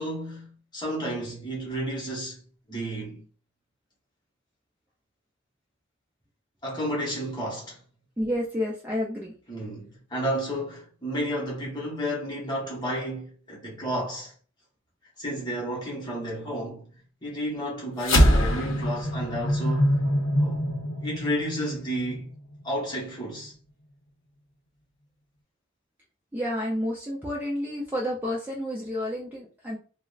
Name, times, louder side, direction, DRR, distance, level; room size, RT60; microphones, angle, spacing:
voice 1, 0.0-2.4 2.7-3.2 6.6-7.8 9.5-14.3 15.2-16.9 17.2-20.0 20.4-20.7 21.0-22.3 22.6-23.5, equal, 20° left, 0.9 m, -32 dB
voice 2, 8.2-9.3 26.3-29.8, left 1 dB, 10° right, 0.4 m, -30 dB
sound 1, 18.0-22.6, equal, 75° left, 0.6 m, -24 dB
3.4 x 2.0 x 2.4 m
head